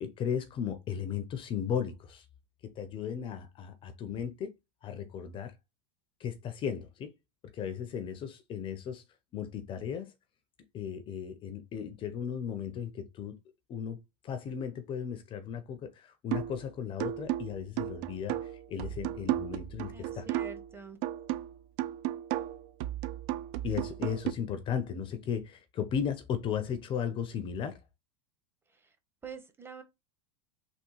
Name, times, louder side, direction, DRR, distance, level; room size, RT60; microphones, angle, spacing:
voice 1, 0.0-2.3 2.6-4.5 4.8-5.5 6.2-7.1 7.5-9.0 9.3-10.1 10.7-13.4 13.7-20.3 23.6-27.8, left 8 dB, 35° left, 0.5 m, -36 dB
sound 1, 16.3-16.6 17.0-20.7 21.0-24.3, right 14 dB, 55° right, 0.4 m, -34 dB
voice 2, 19.9-21.0 29.2-29.8, right 6 dB, 15° right, 0.8 m, -46 dB
3.5 x 2.3 x 2.9 m
hypercardioid pair, 100°, 16 cm